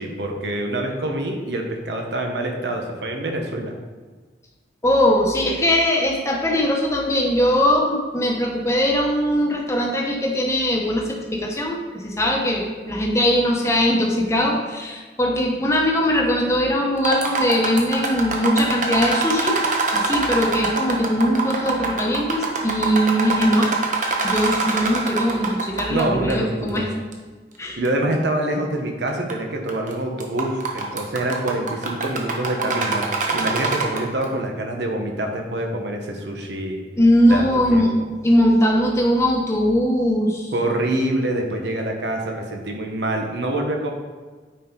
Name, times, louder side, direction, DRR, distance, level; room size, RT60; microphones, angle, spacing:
voice 1, 0.0-3.8 25.9-26.9 27.8-36.8 37.3-37.9 40.5-43.9, right 1 dB, 75° right, 2 dB, 1.1 m, -26 dB
voice 2, 4.8-19.6 19.9-23.7 24.2-26.8 27.6-27.8 37.0-37.9 38.2-40.5, equal, 15° left, -1 dB, 1.0 m, -20 dB
sound 1, 17.0-26.0 26.3-26.4 27.1-27.2 27.8-27.9 29.1-29.3 29.7-29.9 30.2-34.2, right 3 dB, 45° right, 0.9 m, -24 dB
9.0 x 4.6 x 3.9 m, 1.4 s
head